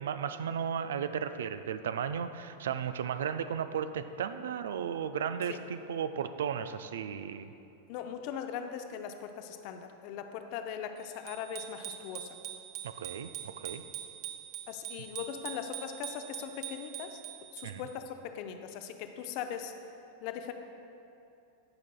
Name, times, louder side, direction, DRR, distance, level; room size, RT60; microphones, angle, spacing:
voice 1, 0.0-7.5 12.8-13.8 17.6-17.8, right 8 dB, 60° right, 11 dB, 0.3 m, -35 dB
voice 2, 7.9-12.4 14.7-17.2 17.5-19.7 20.2-20.5, left 8 dB, 45° left, 7 dB, 0.5 m, -40 dB
Bicycle bell, 11.3-17.9, right 12 dB, 45° right, 0.8 m, -43 dB
17.0 x 6.0 x 2.2 m, 2.7 s
figure-of-eight pair, 90°, 0 cm